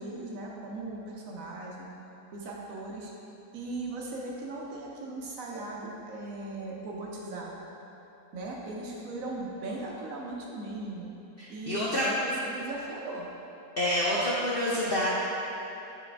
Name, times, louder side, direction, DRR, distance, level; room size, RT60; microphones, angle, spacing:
voice 1, 0.0-1.9 2.3-3.1 3.5-7.7 8.3-11.1 11.5-13.3, right 2 dB, 65° right, -2 dB, 1.2 m, -38 dB
voice 2, 11.4-12.0 13.8-15.1, left 1 dB, 55° left, -6 dB, 0.6 m, -28 dB
7.3 x 4.2 x 3.4 m, 3.0 s
omnidirectional pair, 1.7 m